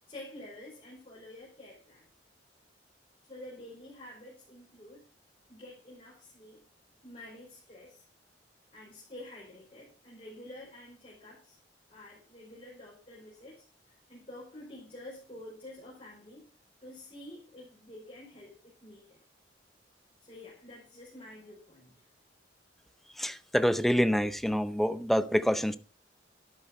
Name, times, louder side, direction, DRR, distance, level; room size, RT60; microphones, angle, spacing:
voice 1, 0.1-2.1 3.3-5.1 5.5-6.6 7.0-8.1 8.7-11.6 11.9-16.5 16.8-18.5 18.8-19.2 20.2-22.0, left 1 dB, 30° left, 5.3 m, -49 dB
voice 2, 23.1-25.8, equal, ahead, 0.6 m, -27 dB
12.5 x 11.5 x 4.3 m
head